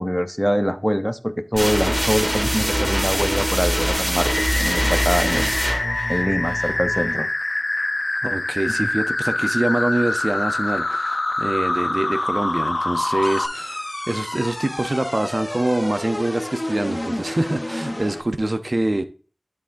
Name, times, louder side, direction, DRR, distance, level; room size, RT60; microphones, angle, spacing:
voice 1, 0.0-5.6 6.1-7.3, equal, 5° left, 9 dB, 0.5 m, -24 dB
sound 1, 1.5-7.2, equal, 25° right, 2.1 m, -23 dB
sound 2, 4.3-13.5, left 2 dB, 65° left, 0.5 m, -25 dB
voice 2, 8.2-19.0, right 1 dB, 55° right, 9 dB, 0.5 m, -25 dB
sound 3, 13.2-18.2, left 1 dB, 35° left, 0.8 m, -30 dB
10.5 x 3.7 x 2.5 m, 0.37 s
wide cardioid pair, 45°, 0 cm